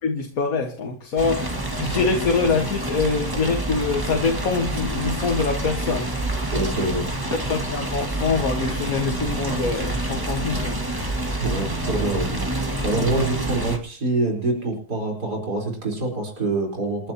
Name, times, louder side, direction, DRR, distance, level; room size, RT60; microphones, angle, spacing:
voice 1, 0.0-6.1 7.5-10.8 13.3-13.4, left 4 dB, 60° left, 2.0 m, -24 dB
sound 1, 1.2-13.8, right 1 dB, 15° right, 1.9 m, -27 dB
voice 2, 6.5-7.1 11.4-12.4 12.8-17.1, right 2 dB, 75° right, 4.9 m, -25 dB
29.5 x 11.5 x 2.9 m
omnidirectional pair, 1.7 m